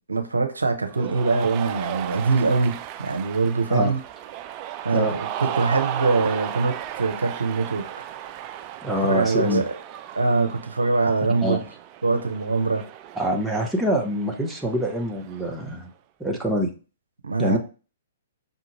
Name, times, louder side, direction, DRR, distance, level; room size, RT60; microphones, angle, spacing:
voice 1, 0.1-4.0 4.8-7.9 9.1-9.7 10.1-11.6 12.0-12.8 17.2-17.6, right 3 dB, 85° right, 0.6 m, -23 dB
Cheering, 0.9-15.7, right 11 dB, 35° right, 0.3 m, -35 dB
voice 2, 8.8-9.6 11.4-11.6 13.2-15.9 16.2-16.7 17.4-17.6, equal, 5° right, 0.8 m, -25 dB
5.4 x 2.5 x 3.0 m
figure-of-eight pair, 120°, 0 cm